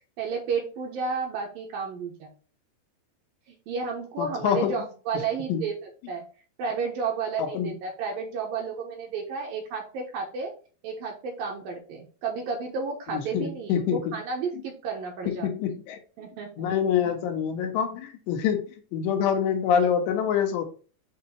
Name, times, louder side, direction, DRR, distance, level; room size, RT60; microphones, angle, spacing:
voice 1, 0.2-2.3 3.5-5.8 6.1-6.2 6.6-10.5 10.8-15.5 16.2-16.9, right 5 dB, 70° right, 0 dB, 2.4 m, -32 dB
voice 2, 4.2-4.7 5.5-5.7 7.4-7.8 13.1-14.2 14.5-14.6 15.3-16.0 16.6-20.6, left 8 dB, 85° left, 3 dB, 3.4 m, -26 dB
8.0 x 2.9 x 4.3 m, 0.38 s
omnidirectional pair, 5.0 m